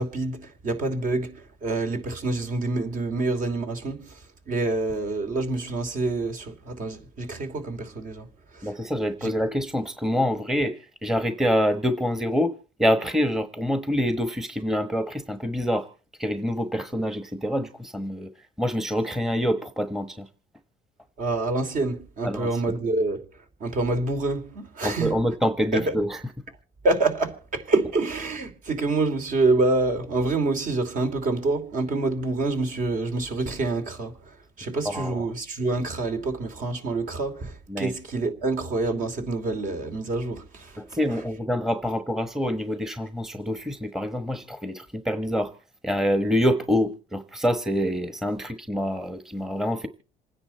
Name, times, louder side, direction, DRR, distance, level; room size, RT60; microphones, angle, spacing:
voice 1, 0.0-4.2 4.5-8.3 8.5-8.7 9.2-9.3 21.2-23.2 23.6-25.1 25.7-25.9 26.8-40.8, right 2 dB, 50° right, 2.9 m, -27 dB
voice 2, 8.6-15.9 16.2-18.3 18.6-20.3 22.2-22.6 24.8-26.2 34.8-35.3 37.7-37.9 40.8-45.5 45.8-49.9, equal, ahead, 1.1 m, -26 dB
27.5 x 10.0 x 4.3 m
cardioid pair, 110°, 17 cm